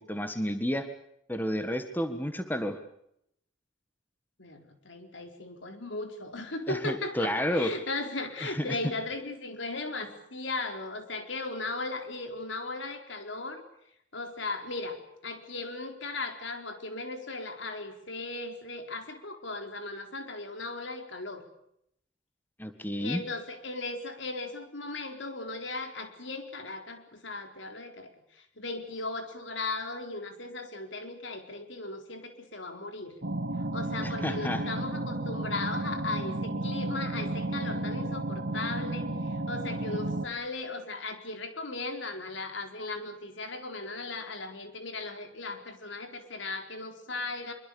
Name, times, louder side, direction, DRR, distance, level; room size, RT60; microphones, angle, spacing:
voice 1, 0.1-0.9 1.3-2.8 6.7-7.7 8.4-8.8 22.6-23.2 34.0-34.6, equal, 10° left, 8 dB, 1.6 m, -31 dB
voice 2, 4.4-13.6 14.1-21.4 23.0-33.2 33.7-47.5, left 3 dB, 75° left, 5 dB, 4.2 m, -37 dB
sound 1, 33.2-40.3, right 1 dB, 65° right, 2.3 m, -33 dB
24.5 x 24.0 x 7.0 m, 0.75 s
head